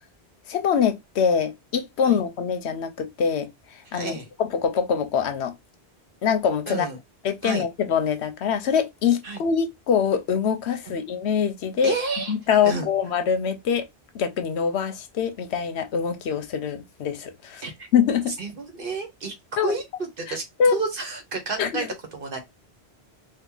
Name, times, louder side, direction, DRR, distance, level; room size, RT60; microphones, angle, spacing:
voice 1, 0.5-3.5 3.9-5.5 6.2-6.9 7.2-12.0 12.3-13.9 14.1-17.6 17.9-18.4 19.6-19.8 20.3-20.8 21.6-21.9, left 7 dB, 80° left, 0.9 m, -24 dB
voice 2, 3.9-4.2 6.7-7.0 7.4-7.6 9.2-9.4 10.8-11.0 11.8-12.3 12.6-12.9 17.6-17.9 18.4-19.3 19.6-20.4 20.7-22.4, right 4 dB, 55° right, 1.2 m, -31 dB
2.8 x 2.6 x 3.8 m
omnidirectional pair, 1.1 m